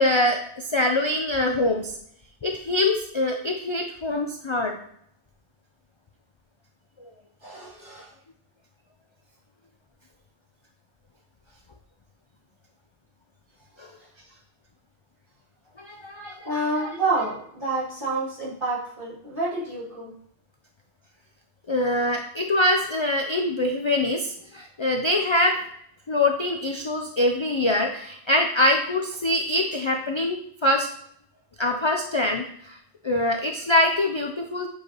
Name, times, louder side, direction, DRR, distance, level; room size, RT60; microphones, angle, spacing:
voice 1, 0.0-2.0 2.4-4.8 13.8-13.9 15.8-16.5 16.8-16.9 21.7-25.6 26.1-30.9 31.6-32.8 33.0-34.7, left 1 dB, 40° left, 3 dB, 0.4 m, -24 dB
voice 2, 7.4-8.1 14.3-14.4 16.1-20.1 22.1-22.2, right 2 dB, 50° right, -8 dB, 2.9 m, -29 dB
8.0 x 4.8 x 3.0 m, 0.68 s
omnidirectional pair, 1.2 m